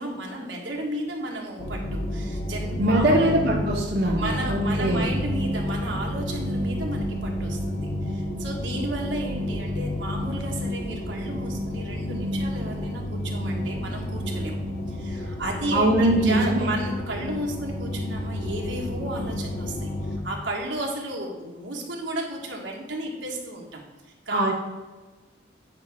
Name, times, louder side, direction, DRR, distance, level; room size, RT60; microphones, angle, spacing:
voice 1, 0.0-3.3 4.1-14.5 14.9-24.5, right 1 dB, 75° right, -1 dB, 1.6 m, -33 dB
sound 1, 1.6-20.2, left 1 dB, 75° left, 1.5 m, -30 dB
voice 2, 2.8-5.1 15.7-16.7 24.3-24.5, right 1 dB, 55° right, -4 dB, 1.1 m, -22 dB
8.8 x 5.6 x 3.6 m, 1.2 s
head